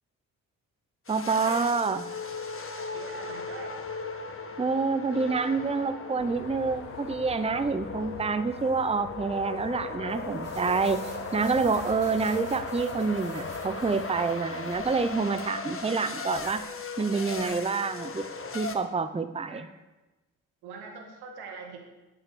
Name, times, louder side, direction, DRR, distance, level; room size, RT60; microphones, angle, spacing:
sound 1, 1.1-18.8, left 3 dB, 35° left, 1.6 m, -37 dB
voice 1, 1.1-2.1 4.6-11.0 11.3-16.6 17.0-18.3 18.5-19.6, right 4 dB, 15° right, 11 dB, 0.7 m, -27 dB
voice 2, 2.8-3.8 19.5-19.6 20.6-21.8, right 5 dB, 85° right, 2 dB, 2.0 m, -43 dB
sound 2, 6.2-14.1, left 6 dB, 90° left, 1.2 m, -47 dB
sound 3, 10.1-15.5, right 3 dB, 55° right, 4.0 m, -50 dB
9.7 x 8.9 x 7.0 m, 1.1 s
supercardioid pair, 50°, 38 cm